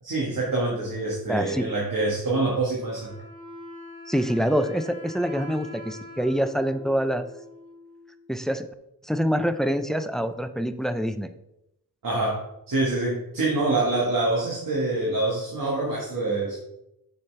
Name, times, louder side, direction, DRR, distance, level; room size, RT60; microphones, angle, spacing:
voice 1, 0.0-3.1 12.0-16.6, right 2 dB, 70° right, -4 dB, 1.6 m, -26 dB
voice 2, 1.3-1.7 4.1-7.3 8.3-8.7 9.0-11.3, equal, ahead, 10 dB, 0.3 m, -25 dB
Wind instrument woodwind instrument, 2.8-8.3, left 2 dB, 85° right, 2.0 m, -43 dB
7.3 x 5.7 x 3.3 m, 0.85 s
wide cardioid pair, 125°, 34 cm